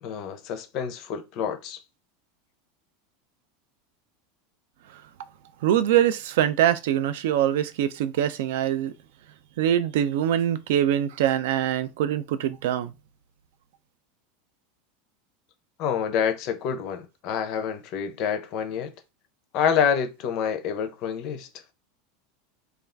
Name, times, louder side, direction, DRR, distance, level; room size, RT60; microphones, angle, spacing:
voice 1, 0.0-1.8 15.8-18.9 19.5-21.5, left 7 dB, 40° left, 0.5 m, -27 dB
voice 2, 5.6-8.9 9.6-12.9, right 11 dB, 65° right, 0.3 m, -23 dB
2.4 x 2.3 x 3.2 m
supercardioid pair, 170°, 0 cm